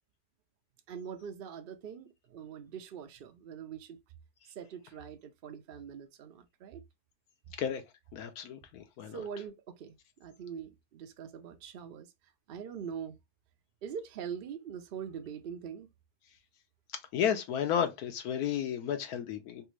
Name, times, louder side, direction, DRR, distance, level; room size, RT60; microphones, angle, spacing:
voice 1, 0.9-4.0 4.5-6.8 9.1-12.1 12.5-13.2 13.8-15.9, right 7 dB, 70° right, 0.5 m, -43 dB
voice 2, 8.1-9.2 17.1-19.7, left 9 dB, 80° left, 1.2 m, -32 dB
3.4 x 2.5 x 3.1 m
omnidirectional pair, 1.6 m